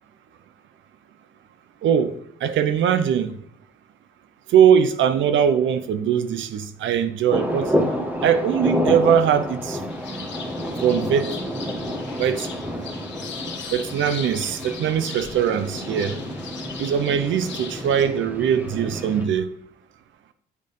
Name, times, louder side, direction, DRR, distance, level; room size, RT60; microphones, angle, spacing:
voice 1, 2.4-3.3 4.5-7.7 8.2-9.8 10.8-11.3 12.2-12.5 13.7-16.1 16.8-19.5, right 8 dB, 75° right, 0.8 m, -21 dB
sound 1, 7.3-19.3, equal, 10° right, 1.4 m, -29 dB
sound 2, 9.9-18.0, left 6 dB, 65° left, 1.4 m, -39 dB
8.9 x 3.9 x 5.3 m
cardioid pair, 90°, 20 cm